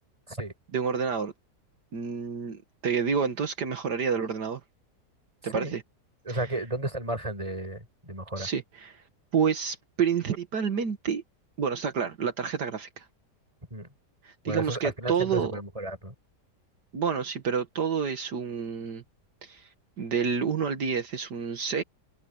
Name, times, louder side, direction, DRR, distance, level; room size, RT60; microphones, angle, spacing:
voice 1, 0.7-1.3 1.9-4.6 5.4-5.8 6.3-6.5 8.4-9.0 9.3-11.2 11.6-13.1 14.2-15.6 16.9-19.0 19.4-19.7 20.0-21.8, right 6 dB, 75° right, 2.1 m, -29 dB
voice 2, 6.3-8.5 13.7-13.9 14.5-16.1, right 1 dB, 20° right, 5.3 m, -33 dB
omnidirectional pair, 1.8 m